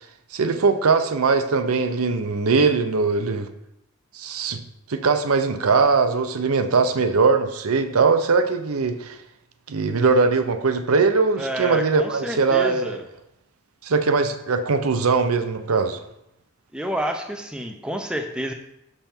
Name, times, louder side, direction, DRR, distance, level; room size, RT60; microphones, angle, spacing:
voice 1, 0.3-3.5 4.1-4.6 4.9-9.2 9.7-13.0 13.8-16.0, right 4 dB, 80° right, 8 dB, 0.6 m, -21 dB
voice 2, 11.4-13.0 16.7-18.5, equal, 5° right, 4 dB, 0.5 m, -29 dB
6.9 x 5.5 x 4.3 m, 0.83 s
head